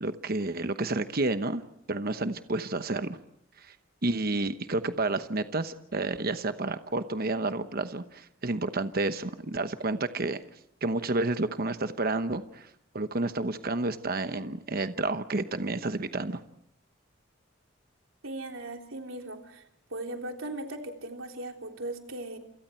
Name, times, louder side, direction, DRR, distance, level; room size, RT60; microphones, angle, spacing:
voice 1, 0.0-1.6 1.9-3.2 3.6-3.7 4.0-10.4 10.8-12.7 12.9-16.4, right 2 dB, 50° right, 10 dB, 1.0 m, -30 dB
voice 2, 18.2-19.6 19.9-22.4, right 2 dB, 85° right, 3 dB, 3.5 m, -38 dB
28.5 x 28.0 x 4.5 m, 0.74 s
head